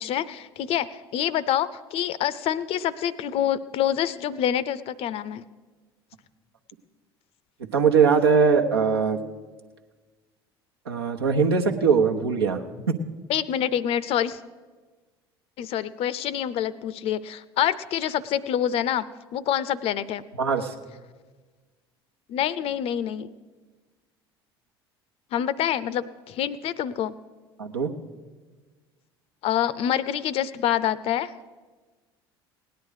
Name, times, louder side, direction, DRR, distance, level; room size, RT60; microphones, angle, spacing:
voice 1, 0.0-5.4 13.3-14.4 15.6-20.2 22.3-23.3 25.3-27.1 29.4-31.3, left 10 dB, 50° left, 18 dB, 0.6 m, -26 dB
voice 2, 7.7-9.2 10.9-12.6 12.9-13.0 20.4-20.7 27.6-27.9, right 5 dB, 85° right, 3 dB, 1.0 m, -21 dB
17.5 x 10.5 x 4.9 m, 1.4 s
figure-of-eight pair, 65°, 13 cm